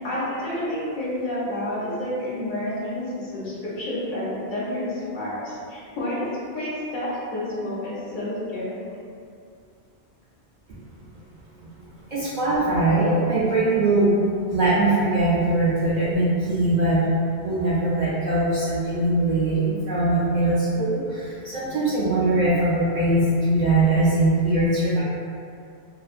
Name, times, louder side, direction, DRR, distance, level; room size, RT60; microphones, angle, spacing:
voice 1, 0.0-6.3 6.5-8.7, left 1 dB, 55° left, -9 dB, 0.8 m, -29 dB
voice 2, 12.1-14.1 14.5-17.0 17.3-25.0, right 2 dB, 55° right, -9 dB, 0.5 m, -21 dB
2.5 x 2.1 x 2.4 m, 2.4 s
omnidirectional pair, 1.1 m